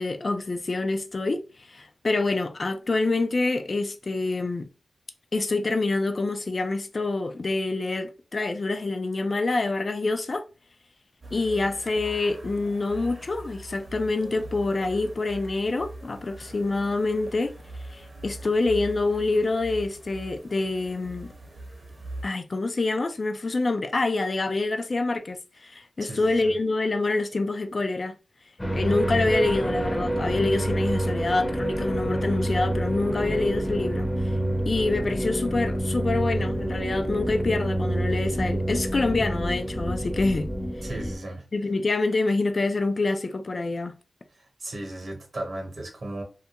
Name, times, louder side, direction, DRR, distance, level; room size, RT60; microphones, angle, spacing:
voice 1, 0.0-4.7 5.3-10.4 11.3-17.5 17.9-21.3 22.2-28.1 28.7-34.1 34.7-40.5 41.5-43.9, left 3 dB, 50° left, 0.3 m, -26 dB
sound 1, 11.2-22.2, right 1 dB, 35° right, 0.6 m, -42 dB
voice 2, 26.0-26.5 40.8-41.5 44.3-46.2, right 1 dB, 65° right, 0.8 m, -36 dB
sound 2, 28.6-41.2, right 1 dB, 20° left, 0.6 m, -27 dB
2.2 x 2.2 x 2.8 m
cardioid pair, 65°, 0 cm